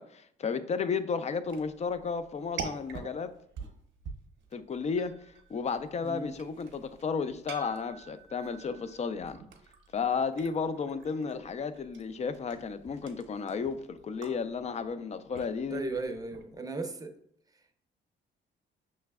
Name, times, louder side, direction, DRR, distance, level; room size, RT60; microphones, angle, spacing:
voice 1, 0.0-3.3 4.5-9.4 9.9-15.8, left 5 dB, 35° left, 0.4 m, -33 dB
sound 1, 1.4-16.6, right 5 dB, 75° right, 0.7 m, -47 dB
voice 2, 15.7-17.1 17.5-17.7, right 3 dB, 20° right, 0.6 m, -36 dB
5.8 x 3.1 x 2.3 m
cardioid pair, 90°, 20 cm